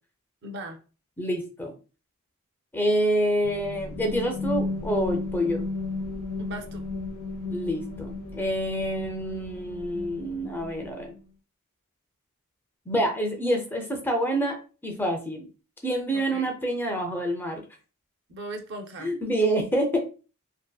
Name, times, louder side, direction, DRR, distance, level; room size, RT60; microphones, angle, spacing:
voice 1, 0.4-0.8 6.4-6.8 16.1-16.5 18.3-19.1, right 1 dB, 50° right, 5 dB, 0.5 m, -38 dB
voice 2, 1.2-1.8 2.7-5.6 7.5-11.1 12.9-15.5 15.8-17.6 19.0-20.0, right 1 dB, 10° left, 3 dB, 0.4 m, -27 dB
sound 1, 3.4-11.2, left 3 dB, 70° left, 0.7 m, -34 dB
2.6 x 2.5 x 2.2 m, 0.35 s
head